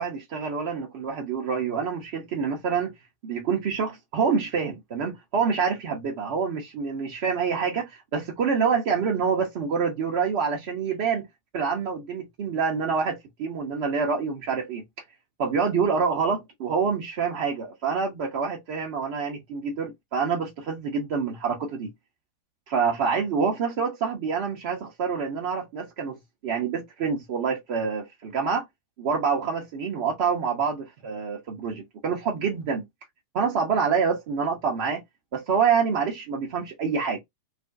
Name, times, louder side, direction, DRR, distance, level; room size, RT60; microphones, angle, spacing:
voice 1, 0.0-2.9 3.2-11.3 11.5-14.8 15.4-21.9 22.7-26.2 26.4-28.7 29.0-32.8 33.3-35.0 35.3-37.2, right 5 dB, 50° right, 0.7 m, -26 dB
2.5 x 2.1 x 2.4 m
figure-of-eight pair, 90°, 0 cm